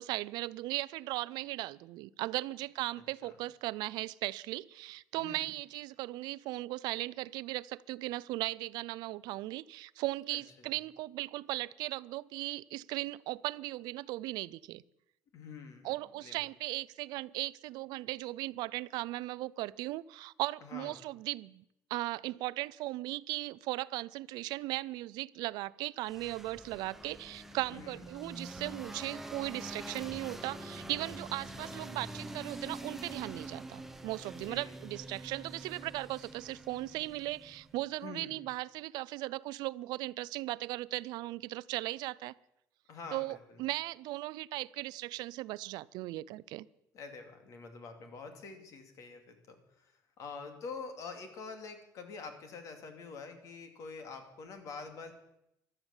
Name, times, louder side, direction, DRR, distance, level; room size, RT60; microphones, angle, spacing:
voice 1, 0.0-14.8 15.8-21.6 21.9-42.3 43.1-46.7, right 18 dB, 80° right, 20 dB, 0.5 m, -37 dB
voice 2, 5.1-5.5 10.3-10.4 15.3-15.9 16.2-16.4 20.6-21.0 27.7-28.0 31.6-31.7 34.3-34.8 38.0-38.4 42.9-43.6 46.9-55.1, left 4 dB, 50° left, 7 dB, 2.7 m, -46 dB
sound 1, 26.1-37.8, right 1 dB, 5° right, 0.8 m, -46 dB
15.0 x 12.5 x 7.3 m, 0.82 s
cardioid pair, 160°, 7 cm